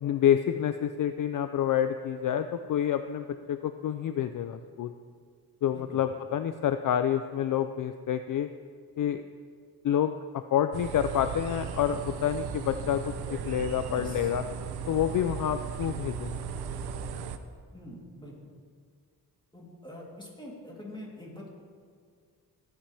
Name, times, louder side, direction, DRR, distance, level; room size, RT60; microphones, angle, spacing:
voice 1, 0.0-4.9 5.6-8.5 9.0-9.2 9.8-14.4 14.9-16.4, left 10 dB, 55° left, 10 dB, 0.5 m, -28 dB
sound 1, 10.7-17.4, right 6 dB, 85° right, 0.7 m, -37 dB
voice 2, 13.8-14.3 17.7-18.3 19.5-21.5, left 1 dB, 10° left, -4 dB, 3.2 m, -44 dB
18.0 x 8.9 x 3.4 m, 2.1 s
cardioid pair, 95°, 38 cm